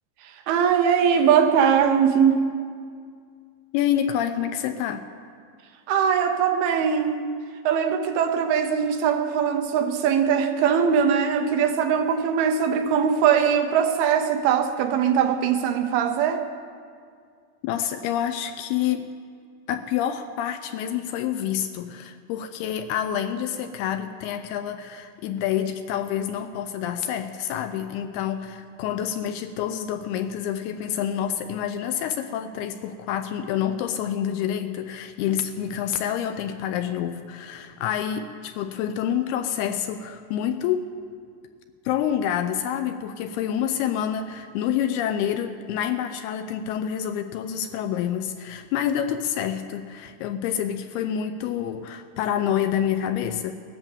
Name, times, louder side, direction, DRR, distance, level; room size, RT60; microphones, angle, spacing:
voice 1, 0.2-2.6 5.9-7.3 7.6-16.5, right 7 dB, 75° right, 6 dB, 2.5 m, -21 dB
voice 2, 3.7-5.0 17.6-19.1 19.7-40.9 41.9-53.5, left 9 dB, 80° left, 8 dB, 2.4 m, -27 dB
18.0 x 10.5 x 7.2 m, 2.1 s
omnidirectional pair, 4.9 m